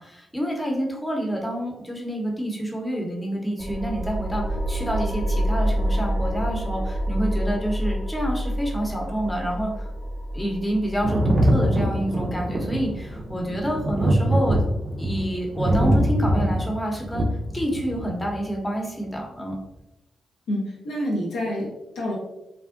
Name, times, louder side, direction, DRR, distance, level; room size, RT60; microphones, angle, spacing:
voice 1, 0.0-9.9 10.3-14.6 15.0-17.3 17.5-19.5, equal, 20° left, 0 dB, 0.7 m, -28 dB
sound 1, 3.6-14.6, equal, 20° right, 0.7 m, -28 dB
Thunder, 11.0-18.4 19.5-19.6, right 1 dB, 50° right, 0.4 m, -23 dB
voice 2, 20.5-22.2, equal, 80° left, -3 dB, 0.6 m, -28 dB
2.5 x 2.1 x 2.4 m, 0.92 s
hypercardioid pair, 40°, 0 cm